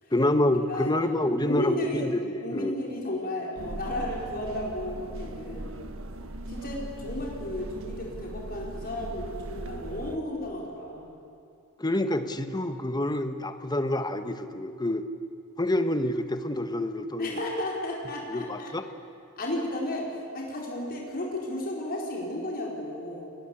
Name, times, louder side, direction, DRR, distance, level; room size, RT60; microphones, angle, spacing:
voice 1, 0.1-2.8 11.8-15.1 15.6-17.4 18.3-18.8, left 1 dB, 20° left, 9 dB, 1.2 m, -27 dB
voice 2, 0.7-1.1 1.4-2.1 2.4-5.7 6.5-11.1 17.2-18.7 19.4-23.3, left 1 dB, 45° left, -2 dB, 4.7 m, -33 dB
sound 1, 3.6-10.2, right 1 dB, 65° right, 1.5 m, -39 dB
29.0 x 21.5 x 8.6 m, 2.7 s
head